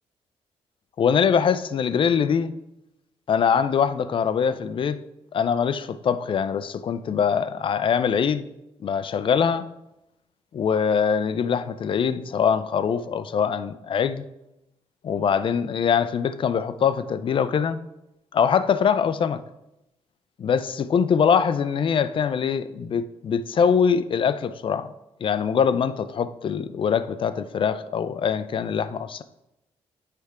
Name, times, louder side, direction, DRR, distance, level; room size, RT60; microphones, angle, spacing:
voice 1, 1.0-2.5 3.3-5.0 5.3-8.5 8.8-9.6 10.5-14.2 15.0-17.8 18.3-19.4 20.4-24.9 25.2-29.2, left 7 dB, 45° left, 0.5 m, -23 dB
9.4 x 3.5 x 4.9 m
cardioid pair, 100°, 12 cm